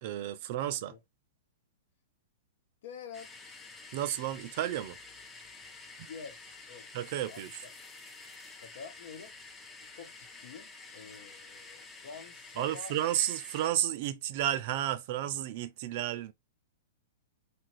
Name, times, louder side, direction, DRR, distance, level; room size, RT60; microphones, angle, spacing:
voice 1, 0.0-0.9 3.9-5.0 6.0-6.1 6.9-7.6 12.6-16.3, right 12 dB, 50° right, 0.4 m, -32 dB
voice 2, 2.8-3.3 6.1-6.9 7.3-7.7 8.6-9.3 9.8-12.9, left 6 dB, 65° left, 0.9 m, -48 dB
sound 1, 3.1-13.7, left 3 dB, 15° left, 0.6 m, -50 dB
2.9 x 2.5 x 3.0 m
hypercardioid pair, 125°, 0 cm